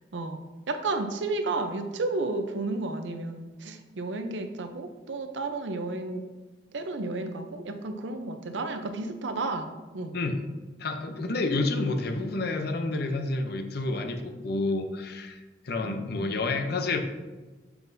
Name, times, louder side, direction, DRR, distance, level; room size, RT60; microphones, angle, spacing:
voice 1, 0.7-6.2 6.7-9.7 9.9-10.1 15.8-16.1, right 3 dB, 85° right, 7 dB, 0.6 m, -32 dB
voice 2, 10.8-15.4 15.6-17.0, left 2 dB, 60° left, 6 dB, 0.6 m, -29 dB
7.1 x 5.8 x 2.7 m, 1.2 s
head